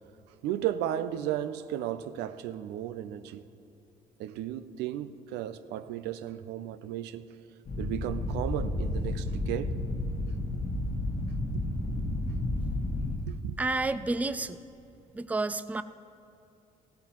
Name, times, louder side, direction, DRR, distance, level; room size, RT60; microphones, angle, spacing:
voice 1, 0.3-3.5 4.2-7.3 7.8-9.8 10.2-10.3 11.5-11.7 13.3-13.6, right 11 dB, 70° right, 12 dB, 0.5 m, -34 dB
sound 1, 7.6-13.2, left 1 dB, 60° left, 1.6 m, -31 dB
voice 2, 13.6-14.6 15.1-15.8, right 2 dB, 10° right, 13 dB, 0.4 m, -30 dB
16.0 x 8.6 x 3.0 m, 2.7 s
hypercardioid pair, 50°, 18 cm